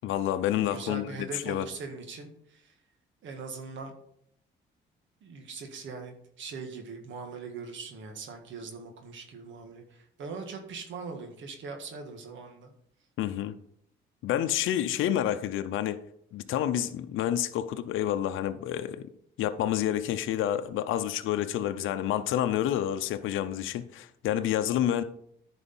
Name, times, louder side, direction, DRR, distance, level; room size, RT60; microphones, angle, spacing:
voice 1, 0.0-1.7 13.2-13.6 14.2-16.0 16.3-19.1 19.4-25.0, left 11 dB, 85° left, 0.6 m, -29 dB
voice 2, 0.7-2.7 3.2-3.9 5.2-12.7, right 4 dB, 75° right, 1.8 m, -41 dB
10.0 x 4.9 x 5.4 m
cardioid pair, 90°, 20 cm